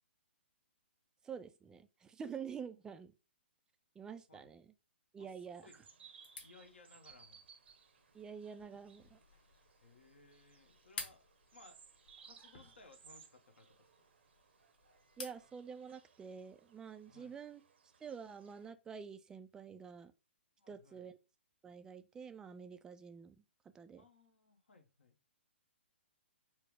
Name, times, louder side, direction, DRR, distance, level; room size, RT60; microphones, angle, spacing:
voice 1, 1.2-3.1 4.0-4.7 5.1-5.6 8.1-9.2 15.2-17.6 18.0-20.1 20.7-21.2 21.6-23.4 23.7-24.0, right 6 dB, 10° right, 0.3 m, -48 dB
voice 2, 5.2-5.8 6.4-7.4 9.8-11.9 12.2-14.1 17.0-17.4 20.6-21.1 24.0-25.2, left 3 dB, 75° left, 1.2 m, -62 dB
sound 1, 5.5-18.7, right 6 dB, 65° right, 0.8 m, -63 dB
sound 2, 6.2-15.5, left 4 dB, 50° left, 1.3 m, -54 dB
4.6 x 2.0 x 4.6 m
figure-of-eight pair, 125°, 6 cm